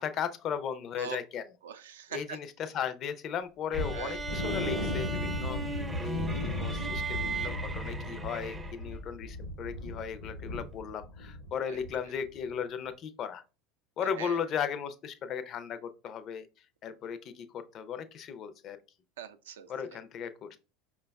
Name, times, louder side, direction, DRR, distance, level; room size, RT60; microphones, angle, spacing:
voice 1, 0.0-1.4 2.1-5.6 6.0-13.4 14.0-16.5 16.8-18.8 19.7-20.6, left 7 dB, 45° left, 0.4 m, -36 dB
voice 2, 1.6-2.4 3.9-4.2 11.6-11.8 14.0-14.4 19.2-20.0, right 9 dB, 80° right, 0.3 m, -42 dB
sound 1, 3.7-11.5 11.8-12.0 12.4-12.5, left 1 dB, 75° left, 0.8 m, -36 dB
sound 2, 3.7-9.0, right 3 dB, 15° right, 0.4 m, -38 dB
4.9 x 2.2 x 2.2 m
hypercardioid pair, 85°, 0 cm